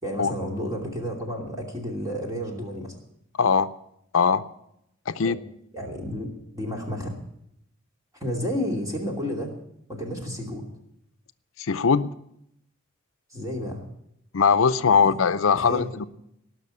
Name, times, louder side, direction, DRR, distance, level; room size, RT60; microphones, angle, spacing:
voice 1, 0.0-2.9 5.2-5.4 5.7-7.2 8.2-9.5 9.9-10.6 13.3-13.8 14.9-15.1 15.5-15.9, equal, 15° right, 0 dB, 2.7 m, -31 dB
voice 2, 3.4-3.7 4.1-4.4 5.1-5.4 11.6-12.1 14.3-16.1, left 5 dB, 75° left, 12 dB, 0.6 m, -20 dB
18.5 x 6.2 x 9.7 m, 0.78 s
head